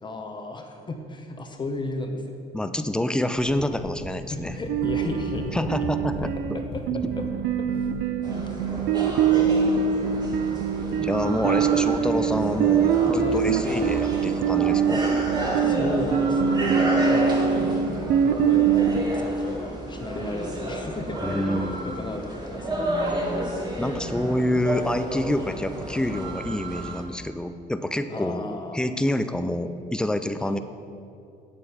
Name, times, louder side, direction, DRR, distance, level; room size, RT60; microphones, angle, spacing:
voice 1, 0.0-2.4 4.3-5.9 6.5-7.3 10.1-10.4 11.3-11.7 13.2-13.5 15.6-17.9 18.2-21.5 21.8-22.9 28.1-28.8 30.4-30.6, left 2 dB, 25° left, 4 dB, 0.9 m, -34 dB
voice 2, 2.5-4.6 5.5-6.3 11.0-15.0 21.2-22.1 23.8-28.4 28.7-30.6, left 1 dB, 5° left, 10 dB, 0.4 m, -27 dB
sound 1, 3.3-7.5 7.7-8.0, left 1 dB, 65° left, 1.6 m, -38 dB
sound 2, 4.7-19.0, right 7 dB, 80° right, 0.6 m, -23 dB
sound 3, 8.2-27.0, right 1 dB, 25° right, 1.8 m, -31 dB
8.5 x 7.8 x 5.6 m, 2.5 s
cardioid pair, 110°, 17 cm